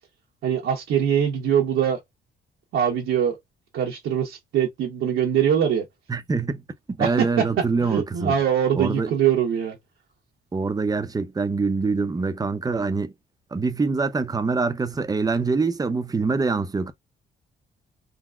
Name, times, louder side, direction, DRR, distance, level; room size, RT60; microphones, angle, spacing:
voice 1, 0.4-2.0 2.7-3.4 3.7-5.8 7.0-9.8, right 9 dB, 80° right, 0.9 m, -23 dB
voice 2, 6.1-6.6 6.9-8.4 8.7-9.1 10.5-13.1 13.5-16.9, right 4 dB, 20° right, 0.5 m, -24 dB
3.7 x 2.0 x 2.3 m
cardioid pair, 90°, 20 cm